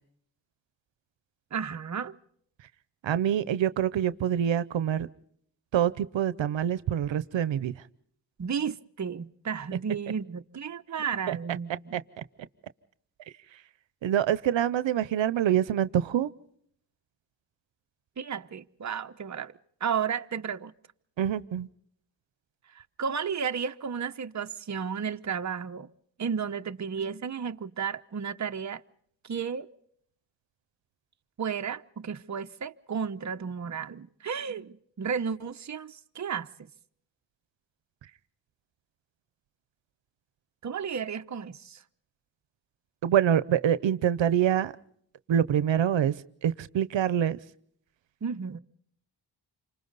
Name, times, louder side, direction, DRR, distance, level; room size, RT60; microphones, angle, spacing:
voice 1, 1.5-2.1 8.4-12.0 18.2-19.5 19.8-20.7 22.7-25.9 26.2-28.8 29.2-29.7 31.4-36.5 40.6-41.8 48.2-48.6, right 6 dB, 40° right, 0.9 m, -33 dB
voice 2, 3.0-5.1 5.7-7.7 11.3-11.4 11.9-12.2 14.0-16.3 21.2-21.7 43.0-44.7 45.3-46.2 46.4-47.4, right 10 dB, 80° right, 0.8 m, -25 dB
28.5 x 25.5 x 4.0 m
cardioid pair, 85°, 45 cm